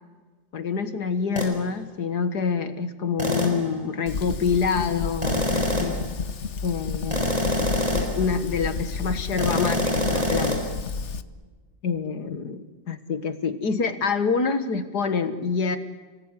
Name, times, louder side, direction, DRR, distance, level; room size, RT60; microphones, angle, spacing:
voice 1, 0.5-6.0 6.6-7.3 7.6-10.7 11.8-15.8, left 5 dB, 70° left, 10 dB, 2.0 m, -26 dB
sound 1, 1.4-1.6 3.2-3.7 5.2-6.1 7.1-8.2 9.4-10.6, equal, 20° right, 5.6 m, -25 dB
Fire, 4.1-11.2, left 5 dB, 45° left, 1.3 m, -32 dB
29.0 x 19.5 x 10.0 m, 1.3 s
omnidirectional pair, 1.8 m